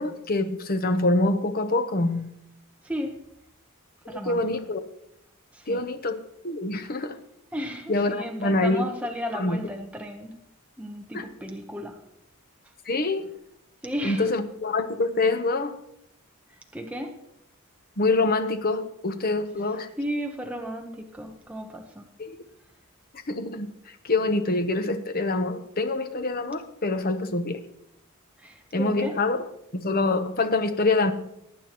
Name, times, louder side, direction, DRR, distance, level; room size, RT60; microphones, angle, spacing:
voice 1, 0.0-2.3 4.1-4.8 5.7-6.2 6.4-7.2 7.9-8.9 9.3-9.6 11.1-11.3 12.9-13.3 14.0-15.8 18.0-19.9 22.2-22.4 23.3-23.7 24.0-27.6 28.7-29.4 29.7-31.1, left 2 dB, 40° left, 8 dB, 0.8 m, -25 dB
voice 2, 2.8-3.2 4.1-4.4 5.5-5.8 7.5-10.4 10.8-12.0 13.8-14.3 16.7-17.2 20.0-22.0 28.4-29.1, equal, 5° right, 2 dB, 0.9 m, -34 dB
19.0 x 8.8 x 3.0 m, 0.78 s
head